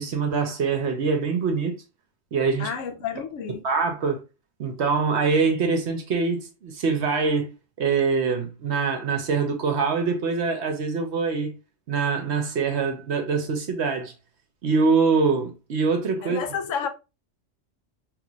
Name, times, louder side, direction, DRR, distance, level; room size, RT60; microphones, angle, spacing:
voice 1, 0.0-1.7 2.3-2.7 3.6-4.2 4.6-11.6 11.9-14.1 14.6-16.4, right 4 dB, 65° right, 0.9 m, -24 dB
voice 2, 2.6-3.6 16.2-16.9, left 7 dB, 75° left, 1.0 m, -30 dB
3.2 x 2.5 x 3.0 m
omnidirectional pair, 1.3 m